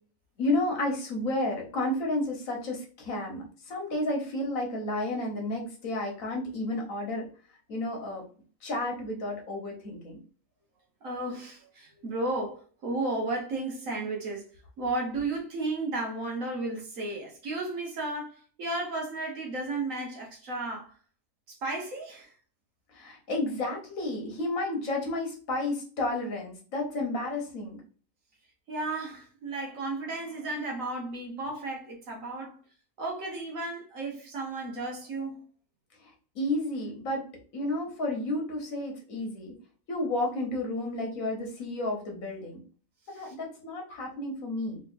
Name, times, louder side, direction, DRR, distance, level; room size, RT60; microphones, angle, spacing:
voice 1, 0.4-7.2 7.7-8.2 8.6-10.2 22.9-27.8 36.3-37.2 37.5-39.5 39.9-42.6 43.1-44.8, left 2 dB, 70° left, 1.6 m, -31 dB
voice 2, 11.0-14.4 14.8-20.9 21.6-22.3 28.7-32.6 33.0-35.4 43.2-43.3, right 2 dB, 65° right, 1.5 m, -33 dB
3.6 x 3.4 x 2.5 m
omnidirectional pair, 1.5 m